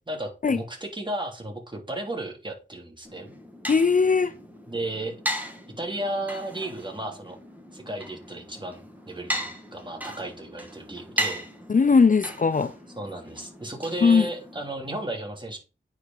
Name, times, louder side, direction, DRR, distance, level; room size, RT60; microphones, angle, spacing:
voice 1, 0.0-3.3 4.7-5.1 5.8-7.4 7.7-8.8 9.1-11.4 13.0-15.6, right 1 dB, 25° right, 3.2 m, -34 dB
sound 1, 3.0-14.7, equal, 10° right, 2.3 m, -37 dB
voice 2, 3.7-4.3 11.7-12.7 14.0-14.3, left 5 dB, 40° left, 0.6 m, -19 dB
9.2 x 4.9 x 4.6 m
cardioid pair, 50°, 20 cm